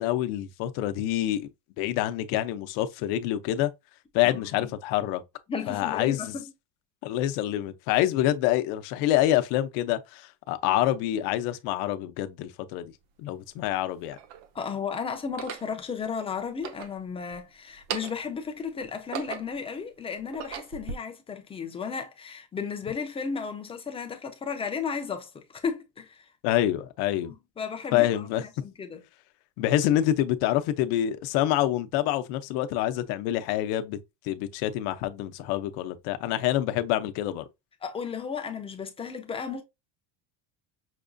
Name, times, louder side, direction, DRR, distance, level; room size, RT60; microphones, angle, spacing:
voice 1, 0.0-1.5 1.8-3.7 4.1-5.2 5.7-6.3 7.0-12.9 13.2-14.2 26.4-27.3 27.9-28.4 29.6-34.0 34.2-37.4, left 13 dB, 70° left, 0.7 m, -26 dB
voice 2, 4.3-4.7 5.5-6.5 14.5-26.3 27.2-29.0 37.8-39.6, left 6 dB, 15° left, 0.4 m, -34 dB
sound 1, 12.7-12.8 13.6-14.5 15.2-15.7 16.5-17.4 17.7-18.3 18.8-19.7 20.2-21.0, right 8 dB, 80° right, 0.8 m, -38 dB
5.9 x 2.6 x 2.2 m
cardioid pair, 180°, 39 cm